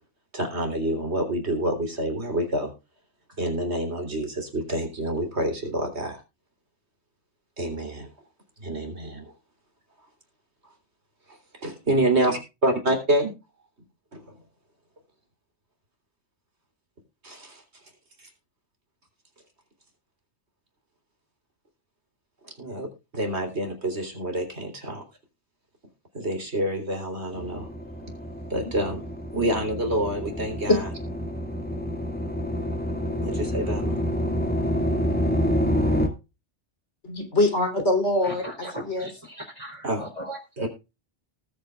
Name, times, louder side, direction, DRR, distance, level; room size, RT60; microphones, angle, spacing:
voice 1, 0.3-2.7 3.4-4.3 4.5-6.1 7.6-8.1 8.6-9.2 11.6-13.3 22.6-22.9 23.1-25.0 26.2-27.6 28.5-29.0 29.3-30.9 33.2-33.9 39.8-40.0 40.6-40.7, right 1 dB, 65° right, 3.9 m, -27 dB
sound 1, 27.4-36.1, equal, 10° left, 2.2 m, -28 dB
voice 2, 37.0-39.1, left 2 dB, 75° left, 4.0 m, -24 dB
voice 3, 38.2-40.7, right 1 dB, 30° right, 3.9 m, -38 dB
19.0 x 8.8 x 2.4 m
omnidirectional pair, 1.2 m